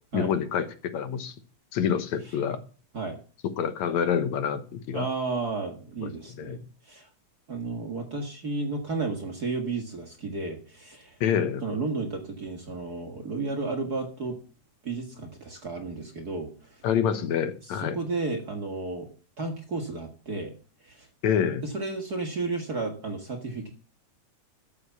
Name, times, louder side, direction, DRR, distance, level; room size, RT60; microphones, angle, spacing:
voice 1, 0.1-1.3 1.7-2.6 3.4-5.1 6.0-6.1 6.4-6.6 11.2-11.6 16.8-18.0 21.2-21.6, left 8 dB, 70° left, 10 dB, 2.4 m, -27 dB
voice 2, 4.9-7.1 7.5-11.2 11.6-14.4 14.8-16.8 17.7-19.1 19.4-20.5 20.8-21.1 21.6-23.7, right 3 dB, 40° right, 4 dB, 1.7 m, -33 dB
13.0 x 7.2 x 7.0 m, 0.37 s
omnidirectional pair, 3.4 m